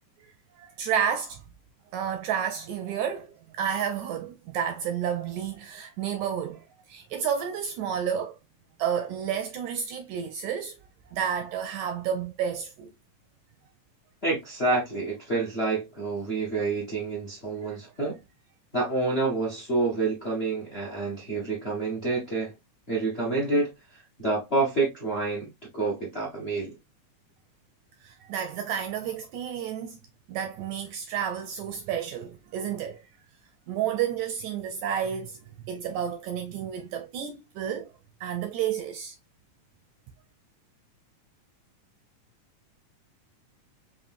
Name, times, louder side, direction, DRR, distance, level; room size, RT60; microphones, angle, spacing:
voice 1, 0.6-1.4 1.9-8.4 8.8-10.8 11.1-12.9 17.6-17.8 28.0-30.0 30.3-33.0 33.7-37.9 38.2-39.2, right 8 dB, 80° right, 1.7 m, -31 dB
voice 2, 14.2-18.2 18.7-22.5 22.9-23.7 24.2-25.5 25.7-26.8, right 3 dB, 35° left, 1.1 m, -28 dB
5.3 x 3.0 x 2.5 m
omnidirectional pair, 3.8 m